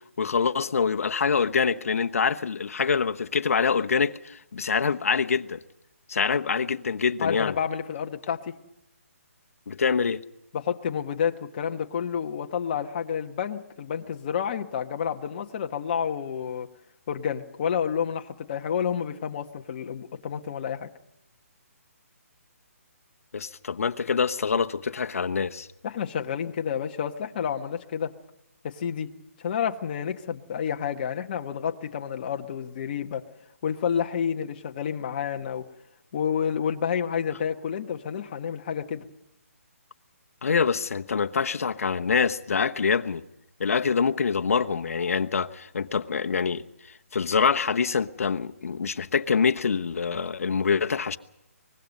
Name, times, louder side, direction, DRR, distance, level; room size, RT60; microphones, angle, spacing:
voice 1, 0.2-5.6 6.1-7.5 9.7-10.2 23.3-25.7 40.4-43.2 43.6-46.6 47.1-51.2, left 5 dB, 70° left, 1.1 m, -25 dB
voice 2, 7.2-8.5 10.5-16.7 17.1-20.9 25.8-28.1 28.6-29.1 29.4-33.2 33.6-35.6 36.1-39.1, left 8 dB, 35° left, 1.3 m, -29 dB
24.0 x 20.5 x 5.4 m
hypercardioid pair, 165°, 8 cm